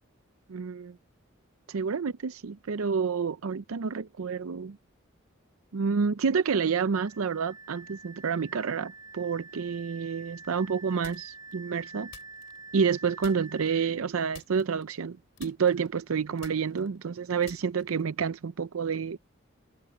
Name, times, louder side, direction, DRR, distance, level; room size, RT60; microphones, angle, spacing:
voice 1, 0.5-1.0 1.7-4.8 5.7-12.1 12.7-19.2, right 6 dB, 90° right, 0.5 m, -29 dB
Wind instrument woodwind instrument, 6.9-14.0, right 3 dB, 20° right, 5.8 m, -47 dB
sound 1, 11.0-11.5 12.1-12.9 13.2-13.7 14.3-15.1 15.4-18.2, left 7 dB, 65° left, 3.9 m, -51 dB
head